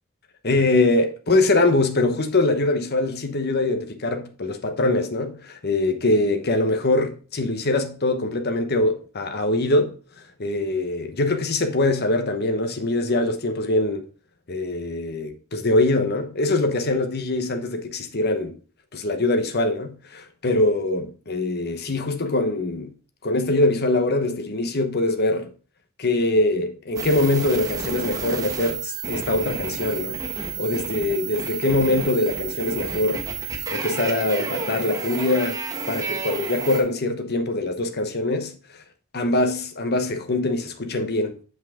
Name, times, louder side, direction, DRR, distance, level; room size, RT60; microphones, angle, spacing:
voice 1, 0.4-10.0 10.4-14.1 14.5-18.6 18.9-22.9 23.2-25.5 26.0-33.3 33.7-35.6 35.9-38.8 39.1-41.4, left 2 dB, 50° left, 1.1 m, -23 dB
sound 1, 27.0-36.8, right 4 dB, 15° right, 1.4 m, -30 dB
7.5 x 6.0 x 3.7 m
head